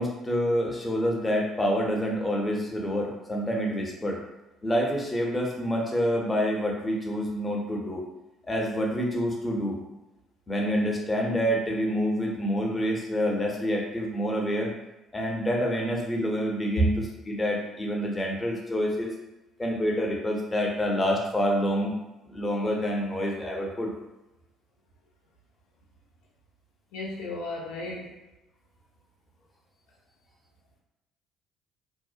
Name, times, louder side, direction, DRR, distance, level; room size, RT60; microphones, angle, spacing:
voice 1, 0.0-4.2 4.6-8.0 8.4-9.8 10.5-14.7 15.1-19.1 19.6-22.0 22.3-23.9, equal, 20° left, 0 dB, 0.7 m, -27 dB
voice 2, 26.9-28.1, right 1 dB, 75° left, -3 dB, 0.5 m, -30 dB
2.8 x 2.0 x 2.4 m, 1.0 s
hypercardioid pair, 55°, 0 cm